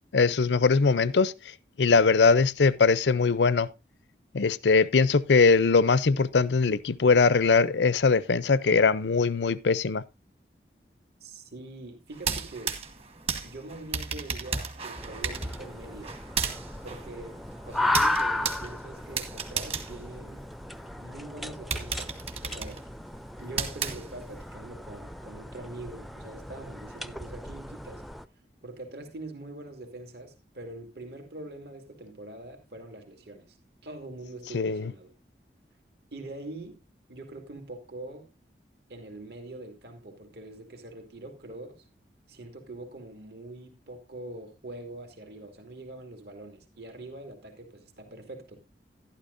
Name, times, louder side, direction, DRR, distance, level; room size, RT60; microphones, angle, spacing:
voice 1, 0.1-1.3 1.8-3.7 4.3-10.0 34.5-34.9, left 4 dB, 85° left, 0.6 m, -21 dB
voice 2, 11.2-12.8 13.4-16.2 16.8-20.4 21.0-22.8 23.4-28.0 28.6-33.6 33.8-35.1 36.1-36.8 37.1-38.3 38.9-41.8 42.3-48.6, right 2 dB, 70° right, 2.4 m, -43 dB
sound 1, 12.1-20.9 21.3-21.4 21.7-24.5, right 5 dB, 35° right, 1.3 m, -34 dB
sound 2, 15.0-28.3, left 1 dB, ahead, 0.4 m, -35 dB
12.0 x 12.0 x 2.6 m
head